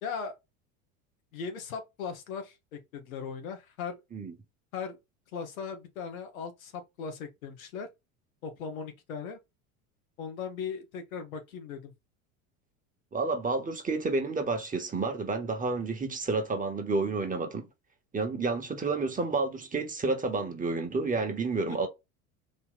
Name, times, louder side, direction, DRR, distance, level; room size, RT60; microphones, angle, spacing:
voice 1, 0.0-0.3 1.3-4.0 4.7-5.0 5.3-7.9 8.4-9.4 10.2-11.9 21.6-21.9, left 6 dB, 85° left, 1.2 m, -38 dB
voice 2, 13.1-17.7 18.1-21.9, right 3 dB, 20° right, 1.3 m, -30 dB
3.9 x 2.8 x 3.9 m
hypercardioid pair, 90°, 40 cm